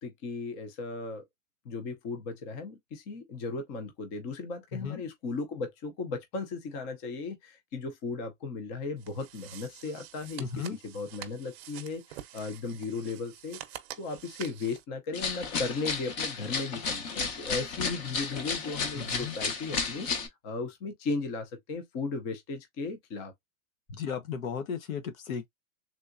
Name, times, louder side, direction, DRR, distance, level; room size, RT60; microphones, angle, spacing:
voice 1, 0.0-1.2 1.6-10.5 10.8-13.6 14.0-20.1 20.4-23.3 23.9-24.0, left 4 dB, 20° left, 0.4 m, -36 dB
voice 2, 4.7-5.0 10.4-10.8 18.9-19.4 23.9-25.5, left 6 dB, 85° left, 1.1 m, -35 dB
sound 1, 9.0-14.8, right 12 dB, 50° right, 0.7 m, -47 dB
sound 2, 15.1-20.3, left 5 dB, 35° left, 0.8 m, -33 dB
3.6 x 2.7 x 2.4 m
supercardioid pair, 155°, 40 cm